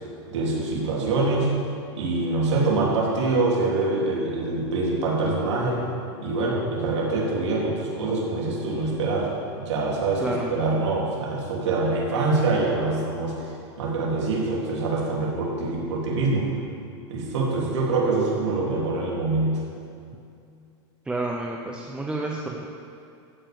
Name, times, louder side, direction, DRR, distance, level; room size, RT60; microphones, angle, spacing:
voice 1, 0.3-1.5 2.0-5.8 6.2-13.5 13.8-16.5 17.1-19.6, right 3 dB, 85° right, -4 dB, 3.4 m, -25 dB
voice 2, 10.2-10.6 21.1-22.7, right 2 dB, 5° right, -1 dB, 0.7 m, -30 dB
14.5 x 5.5 x 7.0 m, 2.5 s
supercardioid pair, 145°, 14 cm